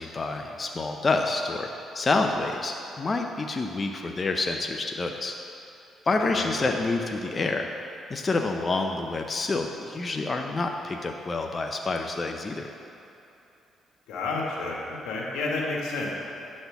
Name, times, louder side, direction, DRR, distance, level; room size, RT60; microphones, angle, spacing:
voice 1, 0.0-1.7 1.9-5.3 6.1-7.7 8.1-12.7, left 3 dB, 30° left, 3 dB, 0.5 m, -28 dB
voice 2, 6.2-6.7 14.1-16.1, left 3 dB, 90° left, -2 dB, 1.6 m, -31 dB
9.4 x 4.3 x 6.9 m, 2.9 s
cardioid pair, 90°, 0 cm